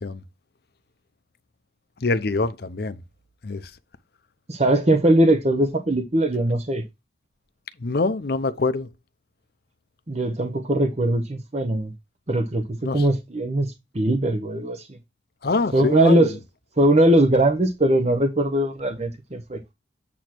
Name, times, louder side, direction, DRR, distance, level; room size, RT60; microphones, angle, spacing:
voice 1, 2.0-3.0 3.4-3.7 7.8-8.9 12.8-13.0 15.4-16.3, left 3 dB, 55° left, 0.6 m, -24 dB
voice 2, 4.5-6.8 10.1-11.9 12.3-14.9 15.7-16.3 16.8-19.6, right 1 dB, 35° right, 0.8 m, -20 dB
8.6 x 2.9 x 6.0 m
head